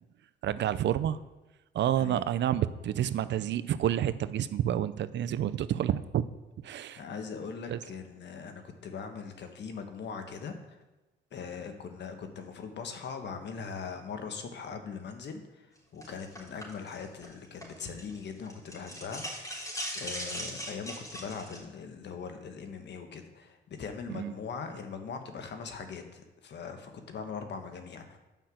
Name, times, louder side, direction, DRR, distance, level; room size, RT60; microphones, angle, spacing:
voice 1, 0.4-1.2 1.7-6.2 6.6-7.0 7.7-7.8 24.1-24.3, right 11 dB, 65° right, 14 dB, 0.6 m, -29 dB
voice 2, 7.0-10.8 11.3-15.7 15.9-19.5 19.9-28.2, left 5 dB, 60° left, 6 dB, 1.5 m, -41 dB
sound 1, 16.0-18.2 18.4-21.6, equal, 15° left, 3.5 m, -39 dB
9.0 x 5.8 x 7.7 m, 1.1 s
cardioid pair, 90°, 20 cm